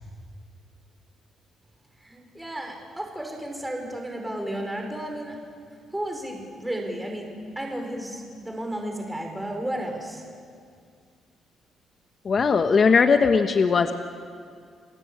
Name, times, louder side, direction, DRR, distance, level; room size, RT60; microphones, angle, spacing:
voice 1, 2.0-5.4 5.9-7.3 7.5-10.2, right 1 dB, 10° right, 2 dB, 4.9 m, -33 dB
voice 2, 12.2-13.9, left 5 dB, 45° left, 7 dB, 1.3 m, -19 dB
30.0 x 18.5 x 8.7 m, 2.2 s
cardioid pair, 90°, 0 cm